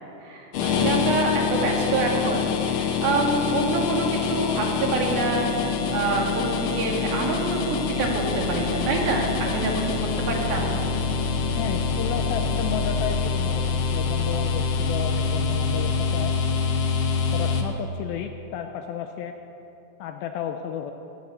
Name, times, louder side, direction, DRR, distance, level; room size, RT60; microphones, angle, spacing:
voice 1, 0.2-7.6 7.9-9.9 10.3-10.8, right 3 dB, 65° right, -1 dB, 3.7 m, -26 dB
sound 1, 0.5-17.6, left 5 dB, 70° left, 2.2 m, -25 dB
voice 2, 11.5-16.3 17.3-19.3 20.0-20.9, left 8 dB, 85° left, 6 dB, 2.2 m, -32 dB
18.0 x 8.3 x 8.2 m, 2.8 s
omnidirectional pair, 4.8 m